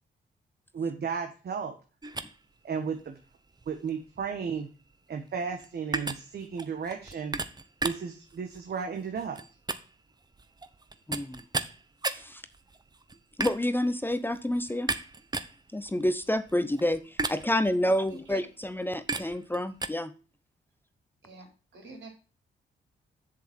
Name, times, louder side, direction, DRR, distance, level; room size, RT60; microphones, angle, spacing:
voice 1, 0.7-1.7 2.6-3.2 3.7-4.7 5.1-7.4 7.8-9.4, right 6 dB, 60° right, 5 dB, 1.4 m, -34 dB
sound 1, 2.0-19.9, right 3 dB, 20° right, 0.9 m, -37 dB
voice 2, 11.1-11.4 12.1-12.4 13.4-14.9 15.7-20.1, left 1 dB, 10° left, 12 dB, 0.8 m, -28 dB
voice 3, 18.1-18.4 21.2-22.1, right 3 dB, 75° right, 1 dB, 4.6 m, -46 dB
7.9 x 7.1 x 4.4 m, 0.34 s
cardioid pair, 80°, 19 cm